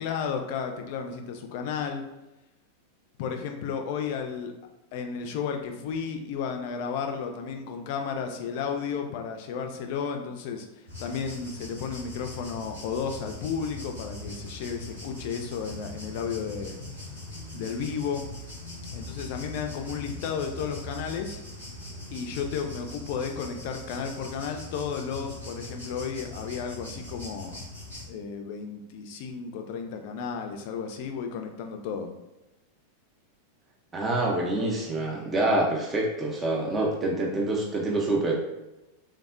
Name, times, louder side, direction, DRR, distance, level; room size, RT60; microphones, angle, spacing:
voice 1, 0.0-2.0 3.2-4.5 4.9-16.8 17.5-18.3 18.9-21.4 22.1-27.6 28.1-32.1, left 6 dB, 50° left, 4 dB, 0.4 m, -33 dB
sound 1, 10.9-28.1, left 1 dB, 85° right, 1.1 m, -41 dB
voice 2, 33.9-38.4, right 2 dB, 20° right, -3 dB, 0.5 m, -26 dB
3.3 x 2.0 x 2.4 m, 1.0 s
figure-of-eight pair, 90°, 0 cm